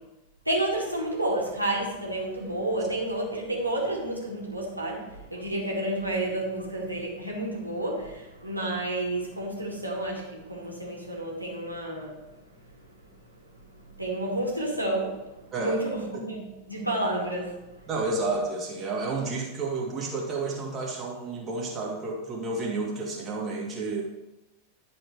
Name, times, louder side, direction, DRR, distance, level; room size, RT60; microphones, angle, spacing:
voice 1, 0.5-13.0 13.4-17.9, right 1 dB, 85° right, -3 dB, 2.2 m, -31 dB
voice 2, 17.9-24.0, right 3 dB, 25° right, -2 dB, 2.3 m, -31 dB
11.0 x 4.3 x 4.9 m, 1.0 s
figure-of-eight pair, 90°, 0 cm